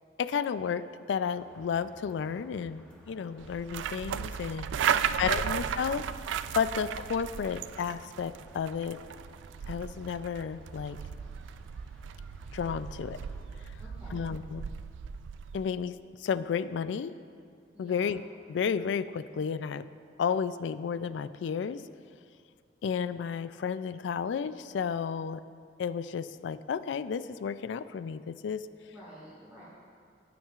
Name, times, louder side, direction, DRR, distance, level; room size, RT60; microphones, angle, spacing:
voice 1, 0.2-4.7 5.2-6.1 6.5-9.0 9.7-11.0 12.5-13.2 13.7-13.8 14.1-14.7 15.5-17.2 17.8-18.2 18.5-19.9 20.2-21.8 22.8-25.4 25.8-28.7, left 6 dB, 80° left, 15 dB, 0.3 m, -32 dB
sound 1, 1.2-13.4, equal, 5° left, 0.9 m, -56 dB
sound 2, 3.4-15.7, right 8 dB, 90° right, 0.3 m, -35 dB
voice 2, 4.8-5.4 13.8-14.2 17.7-18.1 28.9-29.6, equal, 10° right, -11 dB, 1.8 m, -50 dB
15.0 x 9.3 x 2.4 m, 2.2 s
head